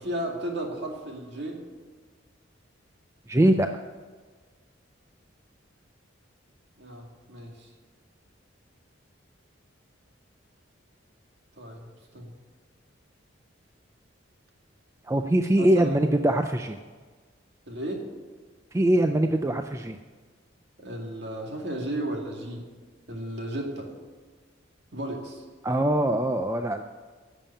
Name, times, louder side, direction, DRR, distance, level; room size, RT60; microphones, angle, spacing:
voice 1, 0.0-1.6 6.8-7.7 11.6-11.9 12.1-12.3 15.6-16.0 17.7-18.1 20.8-22.6 23.1-23.9 24.9-25.4, right 1 dB, 55° right, 1 dB, 2.2 m, -34 dB
voice 2, 3.3-3.8 15.1-16.8 18.7-20.0 25.6-26.8, right 1 dB, 15° right, 6 dB, 0.4 m, -22 dB
11.0 x 7.2 x 8.5 m, 1.5 s
head